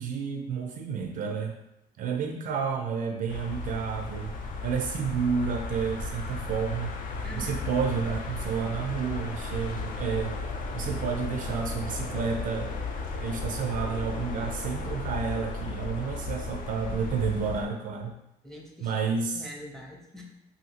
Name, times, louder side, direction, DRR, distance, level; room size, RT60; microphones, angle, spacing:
voice 1, 0.0-1.6 2.0-4.3 4.6-7.0 7.3-10.4 10.7-12.7 13.2-18.1 18.8-19.5, right 6 dB, 55° right, 3 dB, 0.4 m, -30 dB
sound 1, 3.3-17.7, left 3 dB, 50° left, 0.4 m, -35 dB
voice 2, 7.2-7.6 18.4-19.1 19.3-20.2, equal, ahead, -1 dB, 0.6 m, -43 dB
2.8 x 2.7 x 2.8 m, 0.83 s
cardioid pair, 110°, 17 cm